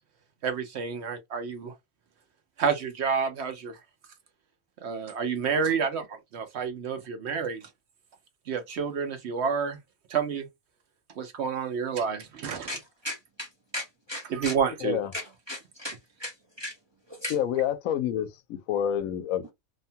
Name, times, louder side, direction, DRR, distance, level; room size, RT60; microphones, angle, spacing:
voice 1, 0.4-1.7 2.6-3.8 4.8-7.6 8.5-9.8 10.1-10.5 11.2-12.7 14.2-15.0, right 6 dB, 65° right, 0.8 m, -29 dB
voice 2, 12.7-13.5 13.7-14.5 15.1-16.3 16.6-16.7 17.2-17.3, left 1 dB, 30° right, 0.5 m, -36 dB
voice 3, 14.8-15.1 17.3-19.5, left 10 dB, 80° left, 1.0 m, -28 dB
2.7 x 2.2 x 2.7 m
omnidirectional pair, 1.4 m